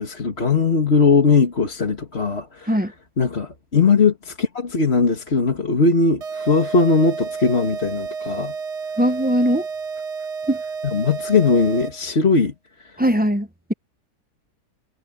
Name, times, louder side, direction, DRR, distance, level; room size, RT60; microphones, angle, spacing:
voice 1, 0.0-2.7 3.2-8.5 10.8-12.5 12.9-13.0, left 4 dB, 40° left, 2.3 m, -19 dB
sound 1, 6.2-12.2, right 5 dB, 85° right, 2.2 m, -31 dB
voice 2, 9.0-9.7 10.5-10.6 13.0-13.7, equal, 10° right, 0.7 m, -20 dB
omnidirectional pair, 1.7 m